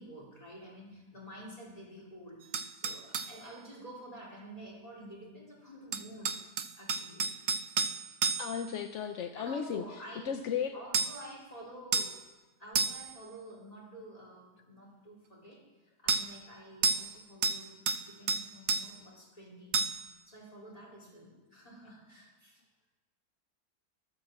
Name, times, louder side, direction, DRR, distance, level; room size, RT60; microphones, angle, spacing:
voice 1, 0.0-6.4 6.8-7.3 9.3-10.3 10.7-12.1 12.6-19.9 20.3-22.9, right 1 dB, 20° left, -4 dB, 4.1 m, -49 dB
sound 1, 2.5-3.3 5.9-8.7 10.9-11.3 11.9-12.2 12.7-13.1 16.1-16.3 16.8-17.1 17.4-18.0 18.3-18.9 19.7-20.1, right 5 dB, 60° right, 0.8 m, -31 dB
voice 2, 8.4-9.8 10.3-10.8, left 8 dB, 60° left, 7 dB, 0.8 m, -34 dB
12.0 x 10.0 x 7.4 m, 1.2 s
omnidirectional pair, 1.8 m